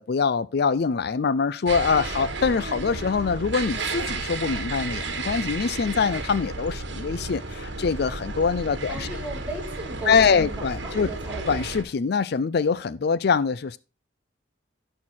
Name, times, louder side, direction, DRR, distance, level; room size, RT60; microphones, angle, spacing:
voice 1, 0.0-9.1 10.1-11.1 11.5-13.8, left 5 dB, 55° left, 0.4 m, -24 dB
sound 1, 1.7-11.8, right 3 dB, 60° right, 1.6 m, -33 dB
voice 2, 8.9-11.6, right 2 dB, 5° right, 3.6 m, -36 dB
11.0 x 5.8 x 4.3 m
head